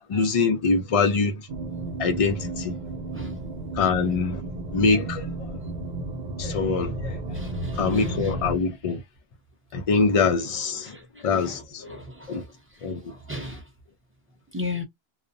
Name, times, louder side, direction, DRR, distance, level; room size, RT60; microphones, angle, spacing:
voice 1, 0.1-1.4 2.0-2.8 3.8-4.4 4.7-5.3 6.4-7.2 7.8-9.0 9.7-11.0 11.2-12.0 12.3-12.4 12.8-13.0, left 4 dB, 55° left, 0.4 m, -24 dB
sound 1, 1.5-8.6, right 2 dB, 55° right, 0.7 m, -33 dB
voice 2, 7.3-8.3 10.8-11.0 11.3-12.4 12.9-13.0 13.3-13.6 14.5-14.8, left 2 dB, 15° right, 0.6 m, -36 dB
2.4 x 2.0 x 2.5 m
omnidirectional pair, 1.0 m